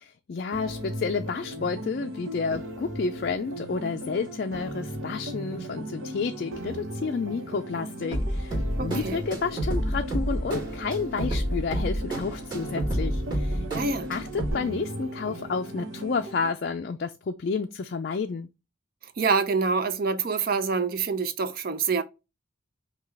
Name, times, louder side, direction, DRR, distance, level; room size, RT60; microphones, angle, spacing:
voice 1, 0.0-13.7 14.1-18.5, left 5 dB, 50° left, 0.4 m, -30 dB
sound 1, 0.5-16.5, equal, 75° right, 1.0 m, -37 dB
sound 2, 8.1-14.5, equal, 25° right, 1.9 m, -30 dB
voice 2, 8.8-9.2 13.7-14.1 19.2-22.0, right 4 dB, 50° right, 0.6 m, -26 dB
5.7 x 2.3 x 3.1 m
head